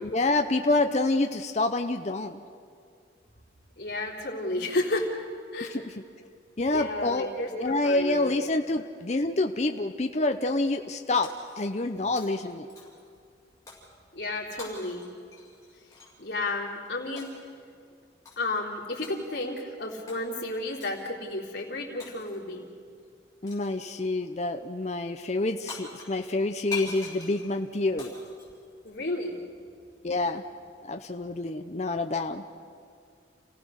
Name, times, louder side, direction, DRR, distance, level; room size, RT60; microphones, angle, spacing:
voice 1, 0.0-2.4 5.7-5.8 6.6-11.3 11.6-12.7 23.4-28.1 30.0-30.4 30.9-32.4, left 2 dB, 35° left, 6 dB, 0.7 m, -27 dB
voice 2, 3.8-5.3 5.5-5.8 6.7-8.4 14.1-15.0 16.2-17.3 18.4-22.6 28.8-29.4, left 2 dB, 60° left, -2 dB, 3.6 m, -32 dB
Shatter, 11.2-11.9 12.2-13.1 13.7-13.9 14.6-16.2 17.2-17.5 18.2-18.6 19.0-19.5 20.1-20.2 20.8-21.1 22.0-22.5 23.5-23.8 25.4-25.5 25.7-29.3, left 4 dB, 15° left, 6.5 m, -43 dB
29.0 x 17.0 x 6.5 m, 2.3 s
head